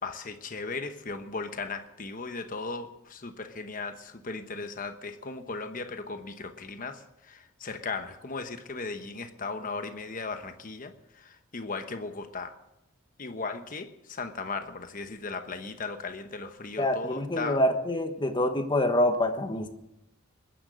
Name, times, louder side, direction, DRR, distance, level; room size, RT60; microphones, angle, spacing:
voice 1, 0.0-12.5 13.2-17.6, left 4 dB, 40° left, 8 dB, 1.0 m, -37 dB
voice 2, 16.8-19.7, left 1 dB, 20° left, 7 dB, 1.2 m, -26 dB
21.5 x 10.5 x 6.4 m, 0.88 s
head